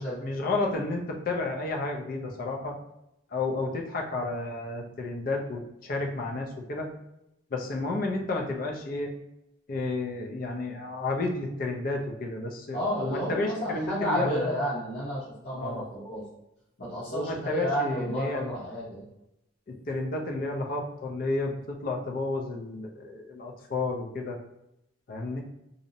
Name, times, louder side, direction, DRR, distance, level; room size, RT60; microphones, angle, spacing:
voice 1, 0.0-2.8 3.3-6.9 7.5-9.1 9.7-14.4 15.6-15.8 17.1-18.5 19.7-24.4 25.1-25.4, left 2 dB, 45° left, 1 dB, 0.4 m, -31 dB
voice 2, 12.7-16.2 16.8-19.0, equal, 60° left, -12 dB, 0.9 m, -31 dB
2.6 x 2.0 x 2.6 m, 0.86 s
head